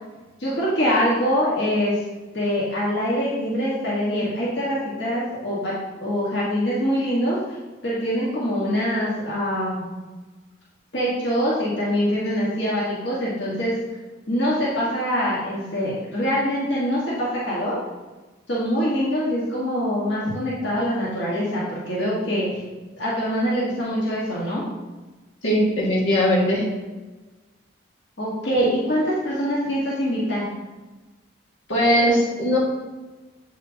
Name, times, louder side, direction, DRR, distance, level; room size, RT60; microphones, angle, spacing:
voice 1, 0.4-1.9 2.3-7.4 7.8-9.8 10.9-13.7 14.3-17.8 18.5-22.6 23.0-24.6 28.2-30.4, equal, 65° left, -7 dB, 1.5 m, -24 dB
voice 2, 25.4-26.7 31.7-32.6, equal, 90° left, -5 dB, 2.0 m, -19 dB
7.9 x 4.9 x 2.8 m, 1.2 s
head